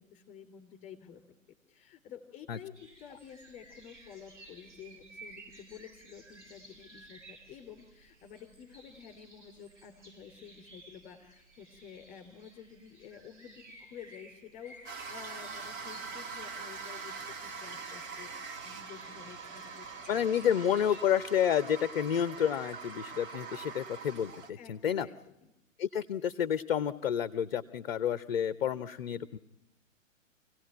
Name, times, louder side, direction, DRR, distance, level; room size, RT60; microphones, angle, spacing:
voice 1, 0.0-1.4 1.7-20.2 24.6-25.2 25.4-25.5, left 8 dB, 20° left, 6 dB, 3.5 m, -51 dB
sound 1, 2.7-21.0, right 2 dB, 65° right, 7.3 m, -56 dB
sound 2, 14.9-24.5, right 5 dB, 30° right, 1.7 m, -43 dB
voice 2, 20.1-25.1 25.8-29.4, left 9 dB, 45° left, 15 dB, 0.8 m, -30 dB
26.0 x 17.0 x 9.0 m, 0.90 s
figure-of-eight pair, 115°, 40 cm